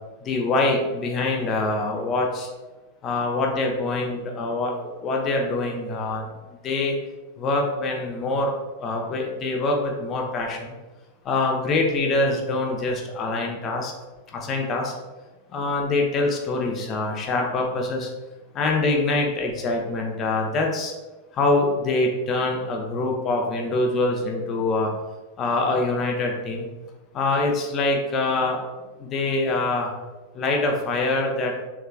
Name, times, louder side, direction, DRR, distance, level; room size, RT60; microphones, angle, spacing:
voice 1, 0.2-2.5 3.0-6.3 6.6-6.9 7.4-8.5 8.8-10.7 11.2-13.9 14.3-14.9 15.5-18.1 18.5-20.9 21.3-24.9 25.4-26.7 27.1-28.6 29.0-29.9 30.3-31.5, left 2 dB, 30° left, 1 dB, 0.7 m, -24 dB
3.4 x 3.2 x 2.3 m, 1.1 s
figure-of-eight pair, 90°, 0 cm